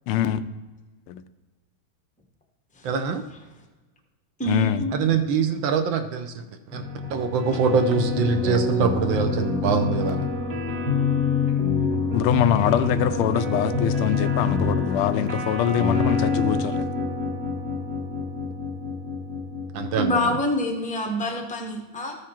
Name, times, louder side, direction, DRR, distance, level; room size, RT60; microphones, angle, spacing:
voice 1, 0.1-0.4 1.1-1.2 4.5-4.8 12.1-16.8, left 10 dB, 90° left, 11 dB, 1.5 m, -24 dB
voice 2, 2.8-3.2 4.9-6.4 6.7-6.8 7.1-10.3 19.7-20.4, right 5 dB, 70° right, 8 dB, 1.3 m, -23 dB
voice 3, 4.4-5.0 20.0-22.2, left 1 dB, 10° left, 1 dB, 0.3 m, -26 dB
sound 1, 6.7-20.1, left 4 dB, 50° right, 1.7 m, -26 dB
14.0 x 5.0 x 4.3 m, 1.2 s
omnidirectional pair, 2.3 m